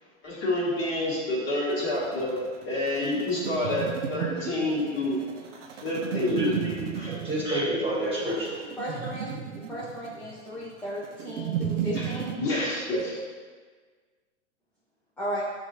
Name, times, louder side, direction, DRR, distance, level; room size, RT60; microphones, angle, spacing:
voice 1, 0.2-2.4 2.6-5.2 5.5-6.7 6.9-7.3 11.9-13.2, left 1 dB, 30° left, -6 dB, 1.3 m, -28 dB
sound 1, 1.7-12.4, right 8 dB, 80° right, 0.5 m, -34 dB
voice 2, 6.3-8.6, right 1 dB, 15° right, -6 dB, 1.5 m, -30 dB
voice 3, 8.8-9.3 9.7-12.4 15.2-15.4, equal, 5° left, -10 dB, 0.3 m, -35 dB
6.6 x 2.5 x 2.7 m, 1.5 s
hypercardioid pair, 110°, 36 cm